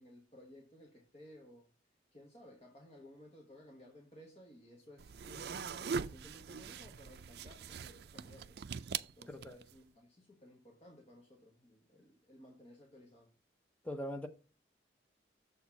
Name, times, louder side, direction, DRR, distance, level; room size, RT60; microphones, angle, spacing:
voice 1, 0.0-1.7 2.1-8.9 9.2-13.3, equal, 35° left, 1.4 m, -57 dB
sound 1, 5.0-9.8, right 6 dB, 60° right, 0.4 m, -42 dB
voice 2, 9.3-9.6 13.8-14.3, equal, 10° left, 0.8 m, -41 dB
7.2 x 4.4 x 5.9 m
head